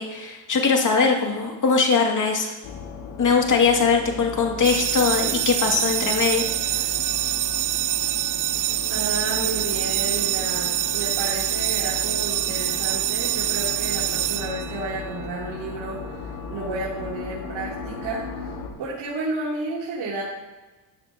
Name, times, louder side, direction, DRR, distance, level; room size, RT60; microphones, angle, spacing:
voice 1, 0.0-2.5 3.2-6.4, left 5 dB, 40° left, 0 dB, 2.6 m, -21 dB
sound 1, 2.6-18.7, left 5 dB, 85° left, 2.1 m, -36 dB
sound 2, 4.6-15.1, right 14 dB, 45° right, 0.4 m, -25 dB
voice 2, 8.9-18.5 18.8-20.2, right 2 dB, 65° right, -6 dB, 3.5 m, -31 dB
14.5 x 9.7 x 3.0 m, 1.2 s
supercardioid pair, 85°, 48 cm